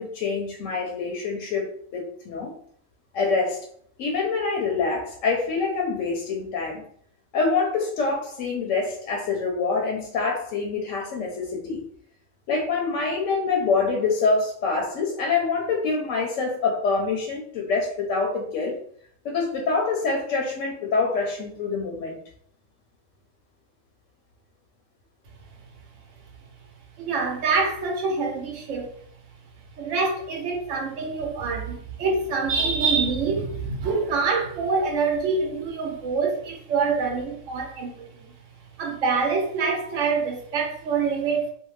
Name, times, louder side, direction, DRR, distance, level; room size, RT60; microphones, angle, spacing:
voice 1, 0.0-2.5 3.1-3.7 4.0-6.8 7.3-11.8 12.5-18.8 19.2-22.2, left 4 dB, 70° left, 0.8 m, -25 dB
voice 2, 27.0-28.9 29.8-38.3 38.8-41.5, right 4 dB, 65° right, 0.9 m, -25 dB
2.7 x 2.1 x 3.0 m
omnidirectional pair, 1.5 m